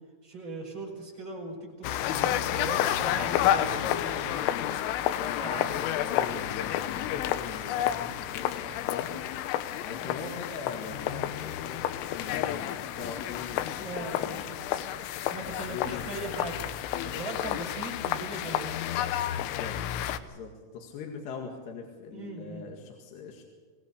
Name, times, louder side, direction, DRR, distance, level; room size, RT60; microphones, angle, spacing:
voice 1, 0.2-4.3 5.2-5.7 9.1-9.2 10.0-10.2 13.8-14.6 15.3-16.7 17.0-18.7 22.1-22.7, right 2 dB, 25° right, -1 dB, 5.3 m, -39 dB
sound 1, 1.8-20.2, left 12 dB, 90° left, 3.5 m, -30 dB
voice 2, 3.1-9.1 9.8-14.6 15.5-16.1 19.3-19.8 20.2-23.4, left 5 dB, 65° left, 1 dB, 3.9 m, -42 dB
24.5 x 17.5 x 6.8 m, 1.4 s
omnidirectional pair, 5.7 m